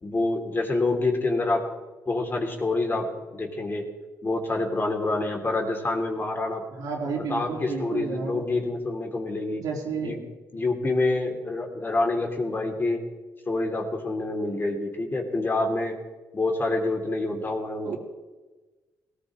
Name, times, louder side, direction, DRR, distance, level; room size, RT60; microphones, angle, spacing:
voice 1, 0.0-1.7 2.1-3.9 4.2-6.6 7.2-9.6 10.0-10.2 10.5-13.0 13.5-15.9 16.3-18.0, left 2 dB, 30° left, 2 dB, 3.0 m, -27 dB
voice 2, 6.7-8.4 9.5-10.2 17.8-18.0, right 5 dB, 80° right, -2 dB, 4.0 m, -31 dB
18.5 x 18.0 x 3.2 m, 1.2 s
cardioid pair, 80°, 7 cm